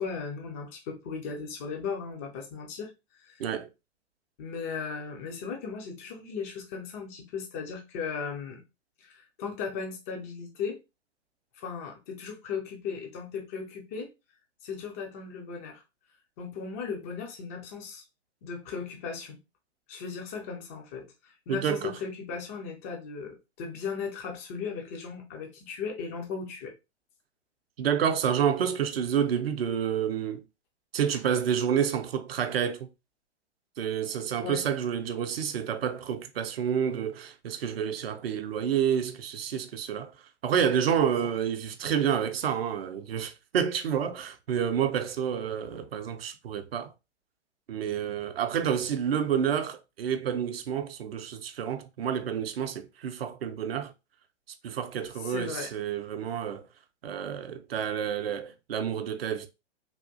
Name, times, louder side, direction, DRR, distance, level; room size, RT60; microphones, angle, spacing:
voice 1, 0.0-2.9 3.2-3.4 4.4-8.6 9.0-10.8 11.5-14.1 14.6-15.8 16.4-18.0 18.4-19.4 19.9-26.7 34.4-34.6 55.2-55.7, left 5 dB, 15° left, 0.3 m, -37 dB
voice 2, 21.5-21.9 27.8-30.4 30.9-32.9 33.8-40.2 40.4-46.9 47.7-53.9 54.6-56.7 57.0-59.5, right 8 dB, 60° right, 0.5 m, -29 dB
3.4 x 2.3 x 2.5 m
figure-of-eight pair, 110°, 35 cm